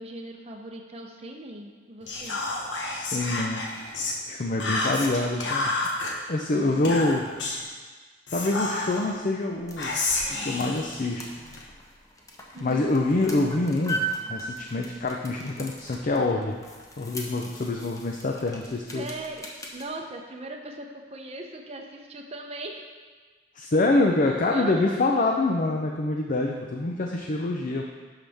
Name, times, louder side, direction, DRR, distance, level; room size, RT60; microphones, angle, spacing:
voice 1, 0.0-2.4 6.5-7.0 12.5-13.0 18.9-19.5 19.7-22.9 24.5-25.1, right 1 dB, 35° right, 2 dB, 0.7 m, -39 dB
Whispering, 2.1-4.2 4.6-6.1 6.8-7.7 8.3-9.2 9.8-11.6, left 2 dB, 90° left, 1.2 m, -30 dB
voice 2, 2.9-3.6 4.3-5.7 6.3-7.3 8.3-10.0 10.4-11.3 12.6-14.0 14.3-16.6 17.0-19.1 23.6-27.8, left 2 dB, 45° left, 1 dB, 0.6 m, -25 dB
sound 1, 9.4-19.9, right 2 dB, 20° left, 0.9 m, -39 dB
11.5 x 5.6 x 3.5 m, 1.4 s
head